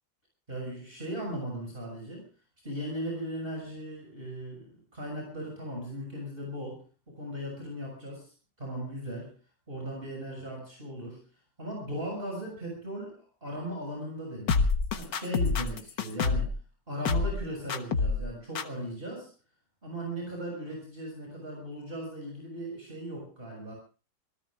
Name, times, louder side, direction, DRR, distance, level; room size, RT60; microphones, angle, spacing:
voice 1, 0.5-2.3 2.6-9.3 9.7-14.6 14.9-16.6 16.9-19.3 19.8-23.7, right 1 dB, 30° right, 0 dB, 6.8 m, -38 dB
sound 1, 14.5-16.6 17.1-17.4 17.7-18.3 18.6-18.7, left 4 dB, 90° left, 2.1 m, -27 dB
27.5 x 19.0 x 2.4 m, 0.36 s
omnidirectional pair, 1.9 m